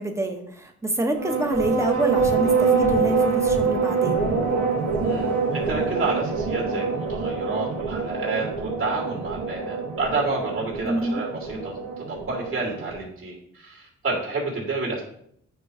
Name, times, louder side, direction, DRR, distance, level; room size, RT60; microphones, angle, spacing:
voice 1, 0.0-4.3 10.8-11.2, right 1 dB, 10° right, 3 dB, 1.2 m, -27 dB
sound 1, 1.1-13.0, right 5 dB, 70° right, 1.6 m, -25 dB
voice 2, 5.0-11.8 12.1-15.0, right 3 dB, 45° right, -3 dB, 2.7 m, -29 dB
9.2 x 3.1 x 4.9 m, 0.69 s
cardioid pair, 90°, 30 cm